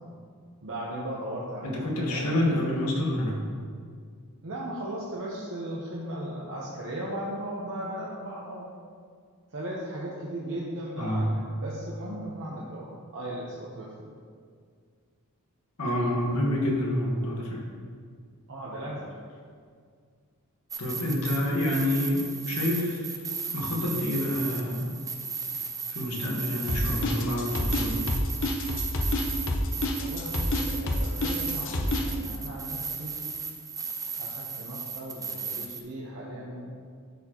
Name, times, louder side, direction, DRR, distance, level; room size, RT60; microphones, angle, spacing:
voice 1, 0.6-2.4 4.4-8.7 9.5-14.1 18.5-19.2 30.0-33.2 34.1-36.7, right 1 dB, 60° right, -5 dB, 1.0 m, -37 dB
voice 2, 1.6-3.4 11.0-11.4 15.8-17.7 20.8-23.2 23.5-25.0 25.9-28.1, left 1 dB, 80° left, -2 dB, 1.5 m, -28 dB
sound 1, 20.7-35.8, right 5 dB, 15° right, 0.4 m, -36 dB
sound 2, 26.7-32.1, left 1 dB, 60° left, 0.8 m, -28 dB
11.5 x 4.3 x 3.0 m, 2.1 s
head